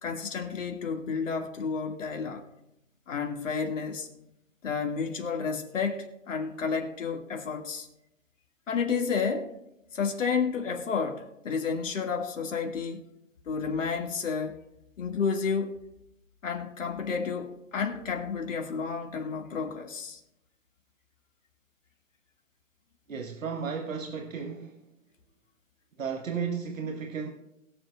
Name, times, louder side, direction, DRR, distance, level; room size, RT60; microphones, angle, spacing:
voice 1, 0.0-2.5 3.1-4.1 4.6-7.9 8.7-9.5 9.9-13.0 13.5-14.6 15.0-15.8 16.4-20.2, left 5 dB, 70° left, 2.2 m, -31 dB
voice 2, 23.1-24.8 26.0-27.3, right 6 dB, 85° right, 1.3 m, -34 dB
21.5 x 7.3 x 2.4 m
hypercardioid pair, 145°, 39 cm